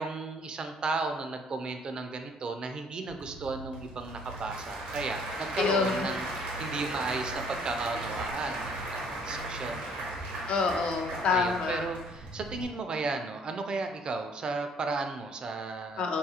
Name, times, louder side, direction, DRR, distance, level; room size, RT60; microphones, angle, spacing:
voice 1, 0.0-10.2 11.3-16.0, right 3 dB, 45° right, 6 dB, 0.4 m, -35 dB
Applause / Crowd, 3.1-12.6, right 1 dB, 85° right, 0.7 m, -37 dB
voice 2, 5.6-6.2 10.5-11.9 16.0-16.2, left 5 dB, 65° left, 2 dB, 0.4 m, -27 dB
2.7 x 2.4 x 2.7 m, 0.99 s
cardioid pair, 80°, 2 cm